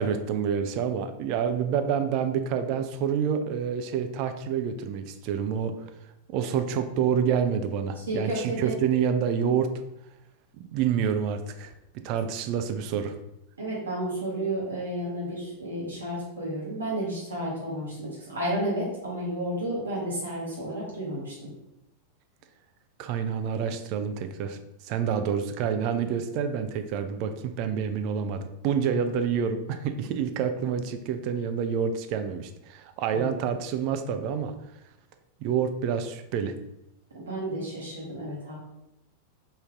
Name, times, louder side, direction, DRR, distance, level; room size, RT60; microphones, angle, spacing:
voice 1, 0.0-5.7 6.3-9.7 10.7-11.7 12.0-13.2 23.0-24.6 24.8-34.5 35.4-36.5, right 7 dB, 45° right, 8 dB, 0.4 m, -28 dB
voice 2, 7.9-8.8 13.6-21.5 33.1-33.3 37.1-38.6, right 1 dB, 70° right, -5 dB, 1.1 m, -32 dB
3.6 x 2.7 x 3.5 m, 0.87 s
figure-of-eight pair, 90°, 0 cm